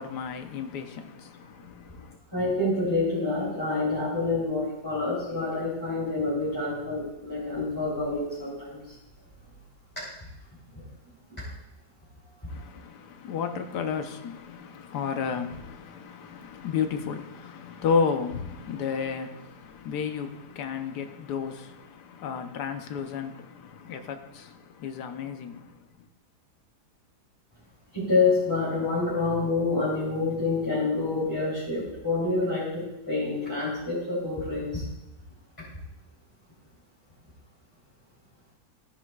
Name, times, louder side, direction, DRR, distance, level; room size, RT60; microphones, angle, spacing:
voice 1, 0.0-2.2 12.5-26.1, left 6 dB, 75° left, 1.5 m, -32 dB
voice 2, 2.3-8.8 27.9-34.8, left 3 dB, 10° left, 3.4 m, -27 dB
16.0 x 10.0 x 2.4 m
omnidirectional pair, 1.8 m